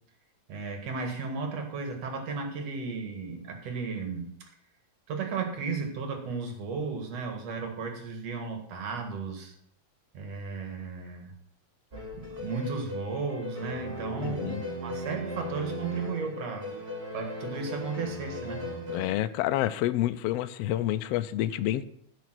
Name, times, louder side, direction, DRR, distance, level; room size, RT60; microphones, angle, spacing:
voice 1, 0.5-4.3 5.1-9.5 10.1-11.3 12.1-16.7 17.1-18.7, right 4 dB, 65° right, 4 dB, 2.8 m, -34 dB
sound 1, 11.9-19.1, left 1 dB, 25° right, 1.9 m, -37 dB
voice 2, 14.2-14.6 18.9-21.9, left 13 dB, 85° left, 11 dB, 1.4 m, -28 dB
15.0 x 5.0 x 6.1 m, 0.68 s
omnidirectional pair, 3.3 m